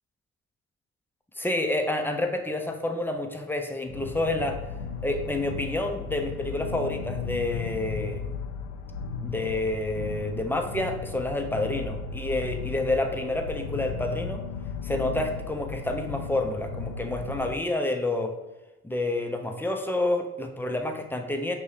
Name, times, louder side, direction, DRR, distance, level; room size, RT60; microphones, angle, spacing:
voice 1, 1.4-4.6 5.0-8.3 9.2-14.4 14.8-18.3 18.8-21.5, left 2 dB, 5° left, 4 dB, 0.6 m, -29 dB
sound 1, 3.9-17.5, left 5 dB, 65° left, 0.5 m, -35 dB
5.4 x 2.7 x 3.2 m, 1.0 s
hypercardioid pair, 45°, 33 cm